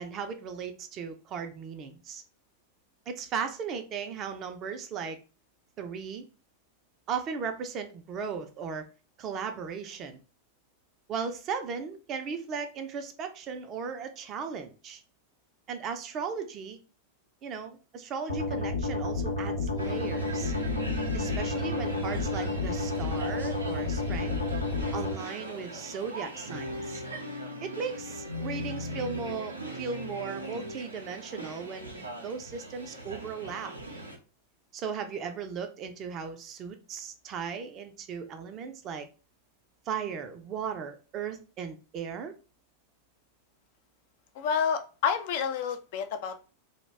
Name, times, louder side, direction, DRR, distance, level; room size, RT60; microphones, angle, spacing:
voice 1, 0.0-2.2 3.1-5.2 5.8-6.2 7.1-8.9 9.2-10.2 11.1-15.0 15.7-16.8 17.4-20.5 21.1-24.4 24.9-27.0 27.6-33.7 34.7-39.1 39.9-42.3, right 6 dB, 35° right, 0.4 m, -37 dB
sound 1, 18.3-25.1, left 3 dB, 80° left, 0.7 m, -30 dB
sound 2, 19.8-34.2, right 1 dB, 80° right, 0.5 m, -39 dB
voice 2, 44.4-46.5, left 7 dB, 50° left, 0.3 m, -29 dB
2.2 x 2.1 x 3.2 m
figure-of-eight pair, 90°, 0 cm